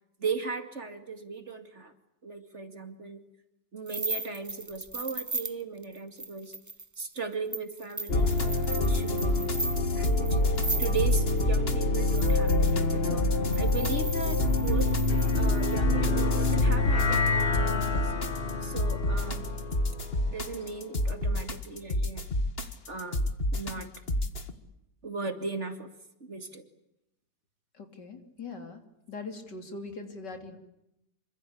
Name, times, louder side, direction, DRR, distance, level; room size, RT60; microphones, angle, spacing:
voice 1, 0.2-1.9 2.2-3.2 3.7-6.5 7.0-8.4 8.8-15.0 15.4-18.1 18.6-19.5 20.3-22.3 22.6-23.9 25.0-25.9 26.2-26.7, right 4 dB, 40° right, 7 dB, 2.7 m, -37 dB
sound 1, 3.9-11.4 12.0-12.9 13.5-15.8, right 2 dB, 15° right, 0.6 m, -37 dB
sound 2, 8.1-24.5, left 2 dB, 35° left, 2.1 m, -26 dB
sound 3, 15.1-21.5, left 5 dB, 55° left, 2.2 m, -35 dB
voice 2, 27.7-28.8 29.1-30.6, left 3 dB, 75° left, 6 dB, 4.0 m, -41 dB
27.0 x 25.0 x 8.6 m, 0.84 s
omnidirectional pair, 1.9 m